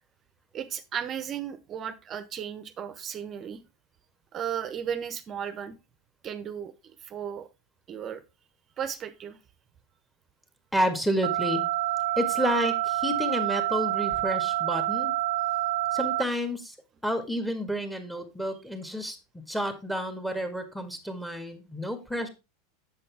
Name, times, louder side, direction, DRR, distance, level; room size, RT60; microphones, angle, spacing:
voice 1, 0.5-3.6 4.3-5.8 6.2-7.5 7.9-8.2 8.8-9.4, right 8 dB, 35° right, 11 dB, 0.9 m, -35 dB
voice 2, 10.7-11.6 12.2-15.1 15.9-16.8 17.0-19.2 19.5-22.3, equal, 5° left, 7 dB, 1.8 m, -30 dB
sound 1, 11.2-16.2, right 16 dB, 70° right, 0.5 m, -27 dB
7.7 x 7.2 x 3.5 m, 0.27 s
hypercardioid pair, 90°, 0 cm